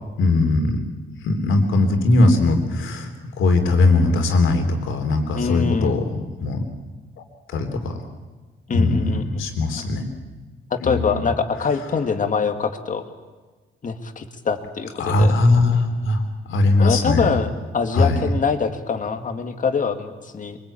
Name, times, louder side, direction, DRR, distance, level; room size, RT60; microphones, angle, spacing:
voice 1, 0.2-0.8 1.2-6.6 7.5-8.0 8.7-10.0 10.8-11.3 15.0-16.2 16.5-17.3 17.9-18.3, left 2 dB, 80° left, 5 dB, 3.6 m, -19 dB
voice 2, 5.3-6.0 8.7-9.5 10.7-13.0 13.8-15.3 16.8-20.6, left 5 dB, 40° left, 6 dB, 2.2 m, -24 dB
23.5 x 23.0 x 8.7 m, 1.3 s
cardioid pair, 115°, 20 cm